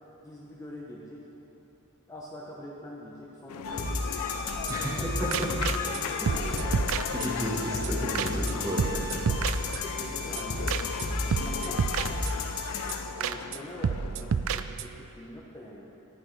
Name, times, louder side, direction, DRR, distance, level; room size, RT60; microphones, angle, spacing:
voice 1, 0.2-1.3 2.1-4.2 4.6-7.1 9.9-10.9 11.2-11.8 12.2-12.3 13.1-15.9, left 1 dB, 15° left, -4 dB, 0.9 m, -44 dB
sound 1, 3.5-14.7, left 8 dB, 85° left, 0.3 m, -38 dB
sound 2, 3.6-13.1, left 2 dB, 70° left, 1.1 m, -33 dB
sound 3, 4.5-5.0 5.3-6.0 6.3-7.6 7.8-7.9 8.1-8.5 8.8-10.1 10.4-10.5 10.7-11.1 11.3-12.6 12.9-13.0 13.2-13.6 13.8-15.1, right 6 dB, 65° right, 0.3 m, -31 dB
voice 2, 4.7-5.5 6.0-6.1 6.9-9.3, right 1 dB, 15° right, -4 dB, 1.4 m, -33 dB
13.0 x 11.0 x 3.3 m, 2.9 s
head